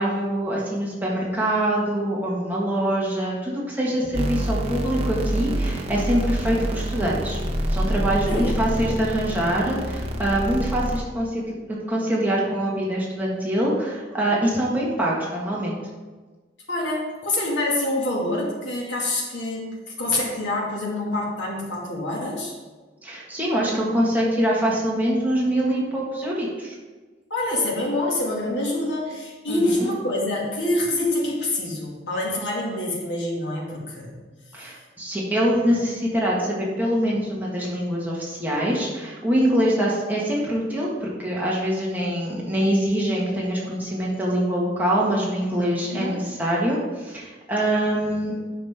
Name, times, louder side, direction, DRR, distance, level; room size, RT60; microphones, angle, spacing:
voice 1, 0.0-7.4 7.7-15.8 23.0-26.7 29.5-29.9 34.5-48.3, right 1 dB, 10° right, -5 dB, 1.7 m, -24 dB
sound 1, 4.1-11.0, right 1 dB, 35° right, 0.9 m, -26 dB
voice 2, 16.7-22.5 27.3-34.1 45.8-46.2, left 1 dB, 85° left, -3 dB, 2.3 m, -26 dB
9.5 x 6.1 x 3.6 m, 1.3 s
head